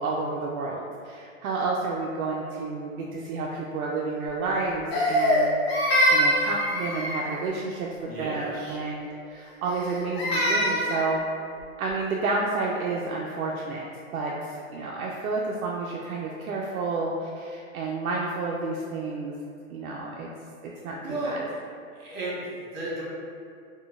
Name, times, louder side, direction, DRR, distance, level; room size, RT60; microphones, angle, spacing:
voice 1, 0.0-7.9 8.2-11.2 11.8-13.8 14.1-19.4 19.7-20.3 20.6-21.0 21.2-21.4, right 3 dB, 75° right, -3 dB, 0.5 m, -30 dB
Crying sobbing, 4.9-7.4 9.7-11.1, equal, 45° left, 0.8 m, -24 dB
voice 2, 8.1-8.8 21.0-21.6 21.9-23.0, right 1 dB, 45° right, -7 dB, 1.3 m, -33 dB
3.7 x 2.3 x 2.3 m, 2.3 s
hypercardioid pair, 160°, 42 cm